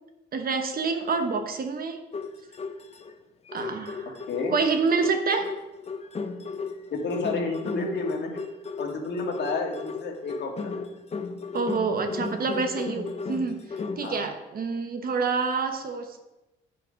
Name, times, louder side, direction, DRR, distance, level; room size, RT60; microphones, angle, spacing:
voice 1, 0.3-2.0 3.5-4.2 4.5-5.5 11.5-13.6 14.0-16.2, right 4 dB, 50° right, 7 dB, 1.0 m, -27 dB
sound 1, 2.1-3.1 3.5-14.1, left 4 dB, 30° left, 0.7 m, -35 dB
voice 2, 6.9-8.4 8.8-10.9 14.0-14.2, left 3 dB, 60° left, 1 dB, 1.8 m, -30 dB
8.1 x 5.8 x 5.1 m, 1.0 s
cardioid pair, 90°, 20 cm